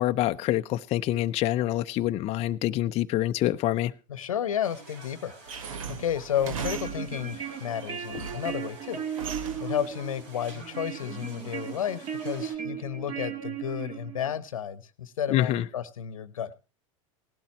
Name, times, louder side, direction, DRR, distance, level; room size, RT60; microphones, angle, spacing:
voice 1, 0.0-3.9 15.3-15.6, left 14 dB, 40° left, 0.5 m, -26 dB
voice 2, 4.1-16.5, left 9 dB, 90° left, 1.0 m, -32 dB
sound 1, 4.6-12.6, right 3 dB, 70° right, 4.2 m, -50 dB
sound 2, 5.5-7.3 7.8-8.6 9.1-9.8, right 6 dB, 85° right, 1.1 m, -37 dB
sound 3, 6.3-14.4, right 8 dB, 35° right, 1.8 m, -37 dB
18.0 x 12.0 x 2.9 m
hypercardioid pair, 100°, 17 cm